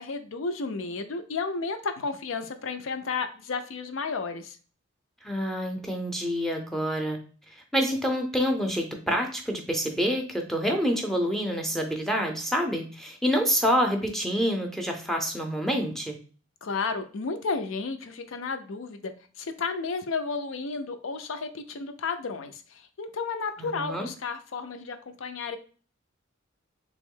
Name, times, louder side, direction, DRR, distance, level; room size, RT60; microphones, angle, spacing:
voice 1, 0.0-4.6 16.6-25.6, left 4 dB, 75° left, 8 dB, 0.5 m, -32 dB
voice 2, 5.2-7.2 7.5-16.2 23.6-24.1, equal, ahead, 3 dB, 0.5 m, -27 dB
3.4 x 3.0 x 3.7 m, 0.40 s
head